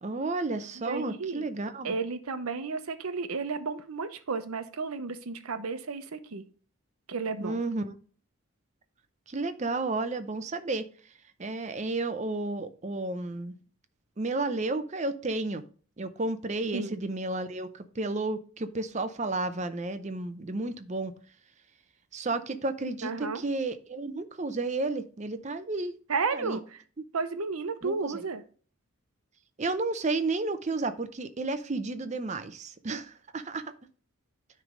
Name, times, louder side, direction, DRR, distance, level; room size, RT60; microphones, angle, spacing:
voice 1, 0.0-1.9 7.4-7.9 9.3-10.8 11.4-13.5 14.2-15.6 16.0-21.1 22.1-25.9 26.3-26.6 27.8-28.1 29.6-33.6, right 2 dB, 30° right, 11 dB, 0.6 m, -32 dB
voice 2, 0.7-1.5 1.8-6.4 7.1-7.6 16.7-17.0 23.0-23.4 26.1-26.8 27.1-28.4, right 4 dB, 85° right, 11 dB, 0.8 m, -33 dB
9.5 x 3.3 x 5.0 m, 0.42 s
head